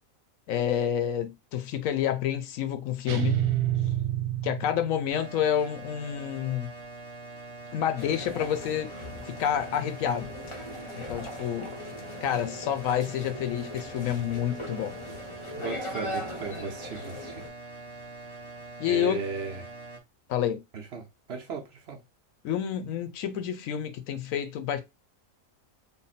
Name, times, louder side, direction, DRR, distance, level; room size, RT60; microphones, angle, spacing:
voice 1, 0.5-3.5 4.4-6.7 7.7-8.9 9.3-10.3 10.9-11.7 12.2-15.0 18.8-19.2 20.3-20.6 22.4-24.8, left 9 dB, 75° left, 1.0 m, -29 dB
sound 1, 3.1-5.1, right 12 dB, 85° right, 1.2 m, -28 dB
sound 2, 5.1-20.0, right 3 dB, 30° right, 0.5 m, -44 dB
sound 3, 8.0-17.5, left 1 dB, 30° left, 0.6 m, -40 dB
voice 2, 15.6-17.4 18.9-19.6 20.7-22.0, right 5 dB, 55° right, 0.9 m, -36 dB
3.5 x 2.1 x 4.0 m
omnidirectional pair, 1.4 m